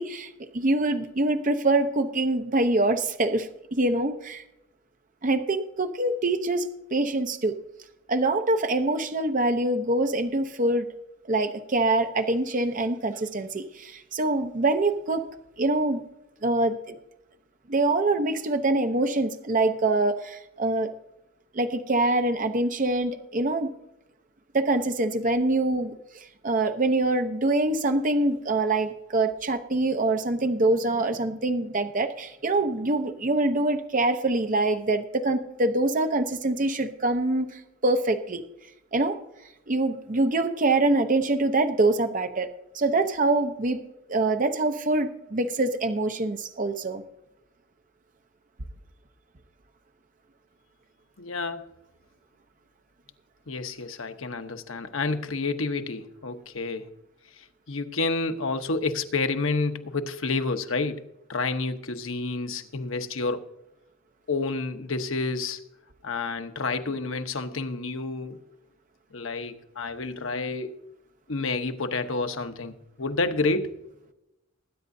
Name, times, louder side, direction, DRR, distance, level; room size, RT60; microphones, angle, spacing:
voice 1, 0.0-4.4 5.2-7.6 8.1-10.9 11.3-15.2 15.6-16.0 16.4-17.0 17.7-20.9 21.5-23.7 24.5-38.4 38.9-39.2 39.7-42.5 42.7-43.8 44.1-47.0, right 2 dB, 40° right, 0.7 m, -25 dB
voice 2, 51.2-51.7 53.5-56.9 57.7-63.5 64.3-65.6 66.0-68.4 69.1-70.8 71.3-73.7, left 3 dB, 70° left, 0.9 m, -29 dB
20.5 x 9.3 x 2.7 m
head